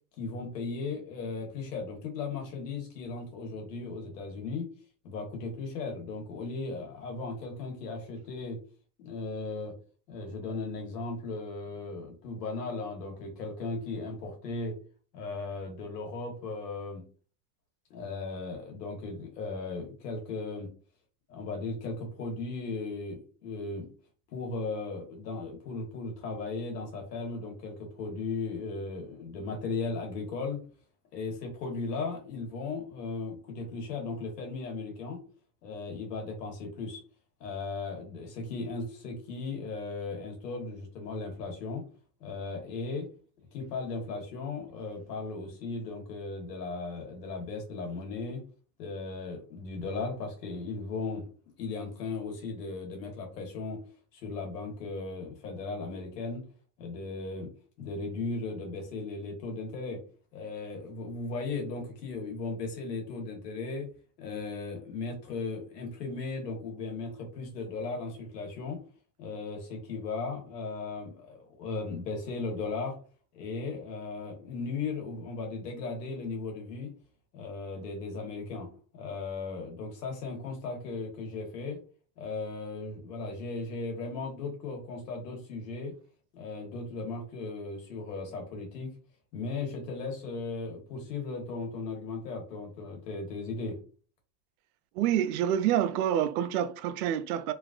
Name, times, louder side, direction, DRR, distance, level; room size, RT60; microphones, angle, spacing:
voice 1, 0.2-4.7 5.0-8.6 9.0-9.7 10.1-14.7 15.1-17.0 17.9-20.7 21.3-23.9 24.3-30.6 31.1-35.2 35.6-37.0 37.4-41.8 42.2-43.1 43.5-48.4 48.8-51.2 51.6-53.8 54.1-56.4 56.8-57.5 57.8-60.0 60.3-63.9 64.2-68.8 69.2-73.0 73.3-76.9 77.3-78.7 78.9-81.8 82.2-85.9 86.3-88.9 89.3-93.8, left 3 dB, 85° left, 1.4 m, -36 dB
voice 2, 94.9-97.5, right 10 dB, 65° right, 0.5 m, -27 dB
3.0 x 2.4 x 2.4 m
hypercardioid pair, 105°, 47 cm